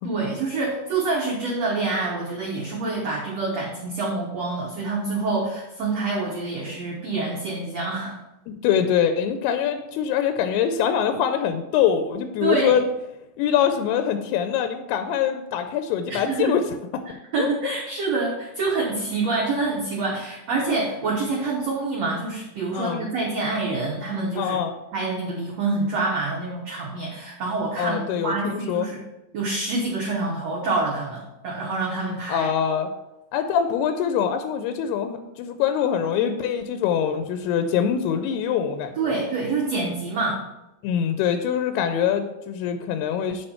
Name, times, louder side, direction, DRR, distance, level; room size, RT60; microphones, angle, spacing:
voice 1, 0.0-8.2 12.4-12.8 16.1-16.5 17.3-24.6 24.9-29.0 29.3-32.5 38.9-40.4, right 3 dB, 75° right, -3 dB, 1.5 m, -26 dB
voice 2, 8.5-12.8 13.4-16.7 17.4-17.7 22.7-23.1 24.4-24.7 27.8-28.9 32.3-32.9 33.3-39.2 40.8-43.5, left 8 dB, 85° left, 8 dB, 2.6 m, -24 dB
8.6 x 5.1 x 4.3 m, 0.92 s
omnidirectional pair, 4.6 m